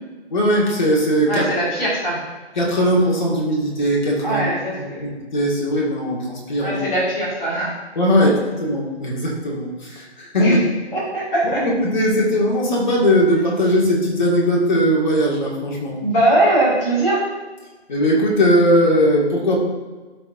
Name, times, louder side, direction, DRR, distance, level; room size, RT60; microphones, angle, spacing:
voice 1, 0.3-1.5 2.6-4.4 5.0-6.8 8.0-10.6 11.4-16.0 17.9-19.6, equal, 45° left, -3 dB, 1.8 m, -19 dB
voice 2, 1.3-2.2 4.2-5.0 6.6-7.7 8.2-8.3 10.4-10.6 10.9-11.6 16.0-17.2, right 1 dB, 10° left, -9 dB, 1.8 m, -20 dB
12.0 x 4.3 x 2.5 m, 1.3 s
figure-of-eight pair, 155°, 34 cm